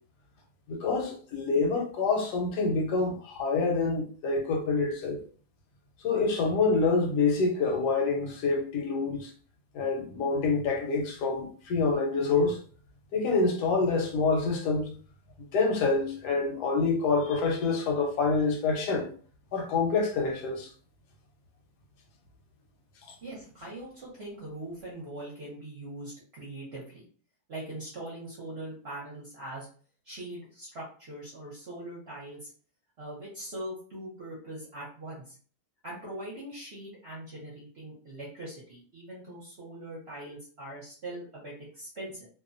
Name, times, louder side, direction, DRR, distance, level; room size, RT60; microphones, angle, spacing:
voice 1, 0.7-5.2 6.0-9.3 9.7-12.6 13.1-14.9 15.4-19.1 19.5-20.7, left 4 dB, 80° left, 1.2 m, -27 dB
voice 2, 23.2-27.0 27.5-29.7 30.0-32.5 33.0-35.3 35.8-42.3, right 1 dB, 50° right, 0.8 m, -41 dB
2.7 x 2.1 x 2.4 m
omnidirectional pair, 1.7 m